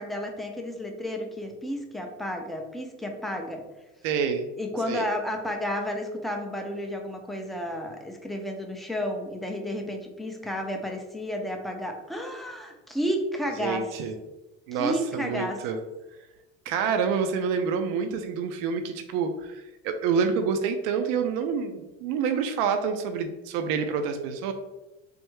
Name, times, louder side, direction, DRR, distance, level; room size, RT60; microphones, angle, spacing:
voice 1, 0.0-3.6 4.6-13.9 14.7-15.6, equal, ahead, 2 dB, 0.4 m, -32 dB
voice 2, 4.0-4.4 4.9-5.1 13.6-14.1 14.7-15.8 16.7-24.5, right 6 dB, 65° right, 6 dB, 0.5 m, -27 dB
3.4 x 2.1 x 3.0 m, 1.0 s
supercardioid pair, 90°, 37 cm